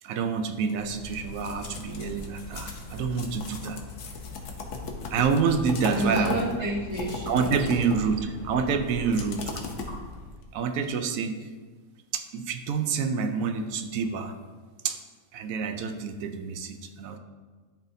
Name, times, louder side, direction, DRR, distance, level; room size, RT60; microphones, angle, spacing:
voice 1, 0.0-3.8 5.1-6.4 7.3-9.5 10.5-11.5 12.1-14.4 14.8-15.0 15.3-17.2, right 5 dB, 75° right, 8 dB, 1.0 m, -27 dB
sound 1, 0.7-10.4, left 3 dB, 60° left, 1.0 m, -37 dB
voice 2, 5.9-7.9 8.5-8.7 9.0-9.2 9.7-10.0, right 1 dB, 30° left, -8 dB, 1.2 m, -32 dB
11.0 x 4.0 x 2.7 m, 1.4 s
omnidirectional pair, 1.5 m